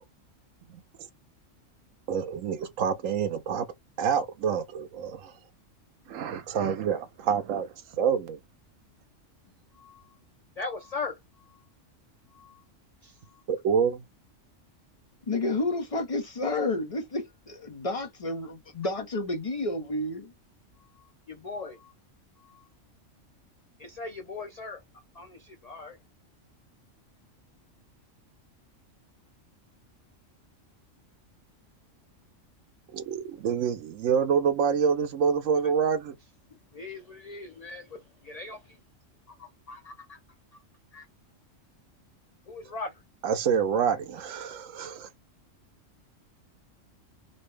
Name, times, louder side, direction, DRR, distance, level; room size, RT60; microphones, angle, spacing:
voice 1, 2.1-3.7 4.0-5.3 6.1-8.4 13.5-14.0 32.9-36.1 43.2-45.1, right 7 dB, 85° right, 1.1 m, -27 dB
voice 2, 10.6-11.2 12.3-12.6 13.0-13.1 21.3-21.9 22.4-22.6 23.8-24.8 25.1-26.0 35.6-35.7 36.7-38.8 39.4-40.2 40.9-41.1 42.5-42.9, left 3 dB, 90° left, 0.3 m, -39 dB
voice 3, 15.3-20.3, left 2 dB, 35° left, 0.7 m, -30 dB
3.9 x 2.1 x 3.2 m
omnidirectional pair, 1.3 m